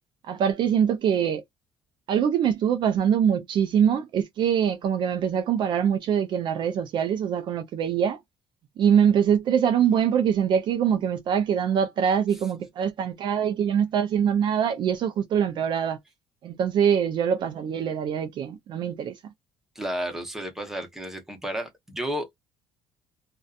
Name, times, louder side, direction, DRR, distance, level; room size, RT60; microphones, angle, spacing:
voice 1, 0.3-1.4 2.1-8.2 8.8-16.0 16.4-19.1, right 8 dB, 50° right, 0.4 m, -23 dB
voice 2, 19.8-22.4, equal, 5° right, 0.8 m, -32 dB
2.5 x 2.2 x 2.3 m
cardioid pair, 155°, 10 cm